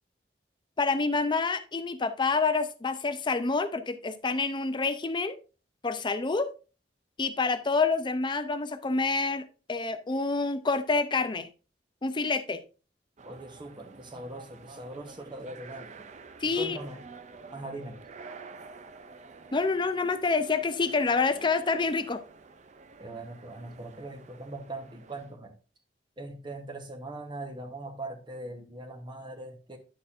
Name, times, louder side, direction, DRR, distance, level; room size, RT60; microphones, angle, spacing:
voice 1, 0.8-5.4 5.8-6.5 7.2-11.5 12.0-12.6 16.4-16.8 19.5-22.2, left 4 dB, 25° left, 0.5 m, -27 dB
voice 2, 13.2-16.1 16.6-17.0 17.5-18.0 23.0-25.6 26.2-29.8, right 2 dB, 25° right, 1.1 m, -41 dB
sound 1, 13.2-25.4, right 4 dB, 40° right, 0.5 m, -49 dB
9.9 x 6.5 x 2.6 m
head